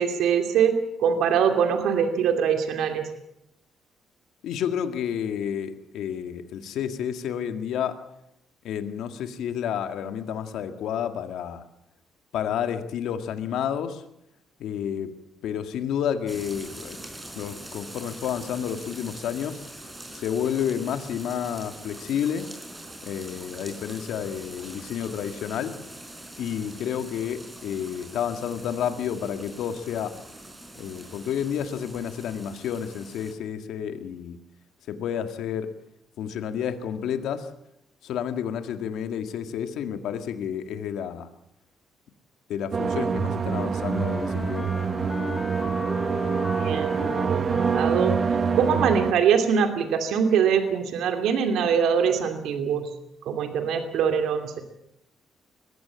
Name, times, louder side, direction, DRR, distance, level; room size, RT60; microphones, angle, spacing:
voice 1, 0.0-3.1 46.6-48.1 48.5-52.9 53.2-54.6, right 7 dB, 80° right, 6 dB, 2.7 m, -23 dB
voice 2, 4.4-8.0 8.6-11.6 12.3-14.0 14.6-15.1 15.4-17.0 17.3-19.6 20.1-22.5 23.0-25.8 26.4-30.1 30.8-34.4 34.9-35.7 36.2-37.5 38.0-41.3 42.5-44.7, left 8 dB, 80° left, 8 dB, 1.9 m, -30 dB
sound 1, 16.3-33.3, right 1 dB, 15° right, 5.0 m, -43 dB
sound 2, 42.7-49.1, right 6 dB, 45° right, 0.7 m, -26 dB
Wind instrument woodwind instrument, 43.7-49.3, left 3 dB, 25° left, 2.4 m, -36 dB
21.5 x 15.5 x 8.6 m, 0.82 s
cardioid pair, 90°, 0 cm